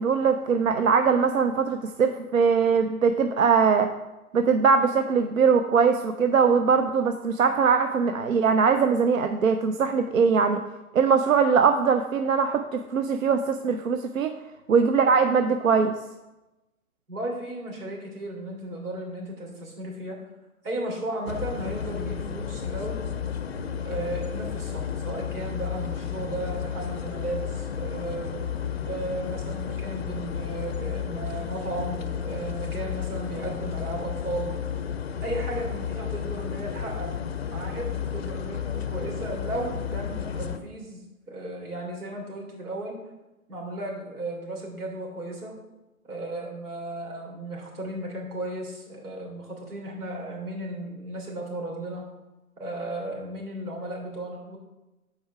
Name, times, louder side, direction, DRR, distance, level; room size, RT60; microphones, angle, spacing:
voice 1, 0.0-3.9 4.3-10.6 10.9-14.3 14.7-15.9, right 5 dB, 65° right, 8 dB, 0.6 m, -21 dB
voice 2, 17.1-20.2 20.6-23.1 23.8-28.3 28.9-34.5 35.2-37.1 37.5-43.0 43.5-45.5 46.0-52.0 52.6-54.6, right 1 dB, 90° right, -1 dB, 3.2 m, -35 dB
sound 1, 21.3-40.6, left 8 dB, 45° left, 0.5 m, -32 dB
7.8 x 4.8 x 5.6 m, 1.0 s
hypercardioid pair, 160°, 44 cm